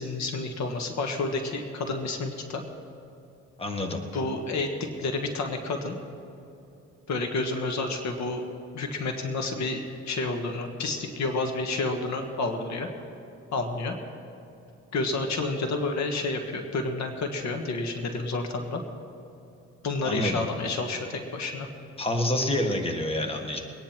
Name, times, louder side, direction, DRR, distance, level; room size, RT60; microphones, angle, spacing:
voice 1, 0.0-2.6 4.1-6.0 7.1-8.4 8.7-12.9 13.5-14.0 14.9-18.8 19.8-21.7, left 3 dB, 65° left, 4 dB, 1.6 m, -30 dB
voice 2, 3.6-4.0 20.0-20.4 22.0-23.6, left 1 dB, 20° left, 4 dB, 1.7 m, -27 dB
22.5 x 9.8 x 4.5 m, 2.8 s
cardioid pair, 90°, 30 cm